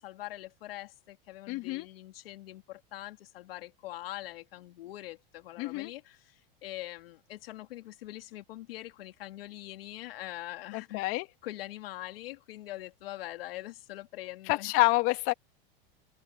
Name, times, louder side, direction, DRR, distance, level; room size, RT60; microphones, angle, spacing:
voice 1, 0.0-11.0 11.4-14.7, left 16 dB, 80° left, 3.1 m, -43 dB
voice 2, 1.5-1.9 5.6-5.9 10.7-11.3 14.5-15.3, left 23 dB, 50° left, 2.0 m, -28 dB
open air
supercardioid pair, 125°, 29 cm